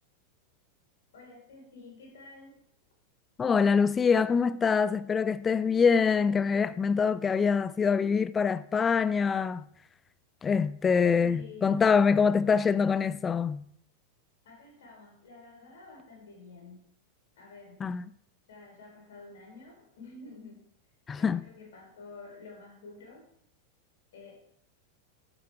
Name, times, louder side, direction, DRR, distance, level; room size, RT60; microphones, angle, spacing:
voice 1, 1.1-2.6 11.2-11.9 14.4-16.8 17.4-17.8 18.5-20.7 21.2-23.3 24.1-24.3, left 3 dB, 60° left, 4.4 m, -49 dB
voice 2, 3.4-9.7 10.4-13.6 17.8-18.0 21.1-21.5, left 6 dB, 20° left, 0.4 m, -25 dB
12.0 x 9.4 x 3.4 m
figure-of-eight pair, 90°, 0 cm